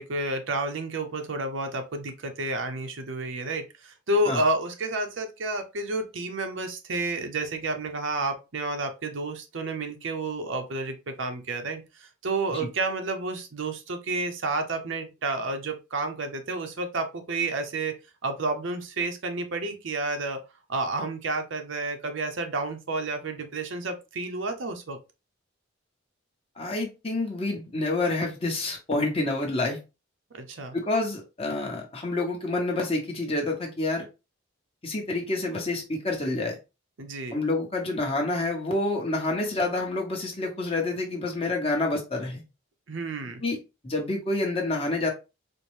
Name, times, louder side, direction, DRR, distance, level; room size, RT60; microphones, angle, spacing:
voice 1, 0.0-18.0 18.2-20.4 20.7-25.0 30.3-30.8 37.0-37.4 42.9-43.4, right 2 dB, 65° right, 6 dB, 0.6 m, -30 dB
voice 2, 26.6-29.8 30.7-34.0 34.8-36.6 37.3-42.4 43.4-43.6 43.8-45.1, left 2 dB, 30° left, 0 dB, 1.0 m, -28 dB
4.3 x 2.1 x 3.1 m, 0.27 s
head